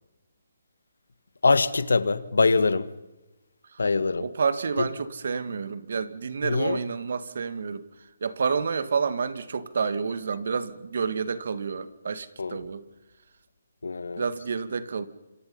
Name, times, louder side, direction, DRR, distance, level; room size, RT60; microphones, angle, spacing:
voice 1, 1.4-2.9 3.8-4.3 4.8-4.9 6.4-6.8 12.4-12.6 13.8-14.2, left 3 dB, 90° left, 2.0 m, -23 dB
voice 2, 4.2-7.8 8.2-12.8 14.2-15.0, right 5 dB, 65° right, 2.2 m, -29 dB
28.0 x 26.5 x 5.6 m
hypercardioid pair, 160°, 0 cm